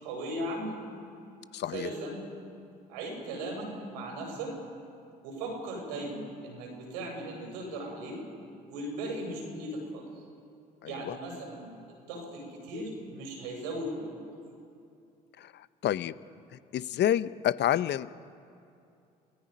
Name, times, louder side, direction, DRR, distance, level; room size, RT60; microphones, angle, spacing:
voice 1, 0.0-0.7 1.7-2.2 2.9-4.5 5.2-8.2 8.7-10.0 10.8-11.7 12.1-14.2, right 1 dB, 85° right, 1 dB, 6.5 m, -37 dB
voice 2, 1.5-1.9 10.8-11.2 15.4-16.1 16.7-18.1, left 11 dB, 55° left, 16 dB, 0.8 m, -29 dB
28.5 x 19.0 x 5.3 m, 2.5 s
hypercardioid pair, 55°, 21 cm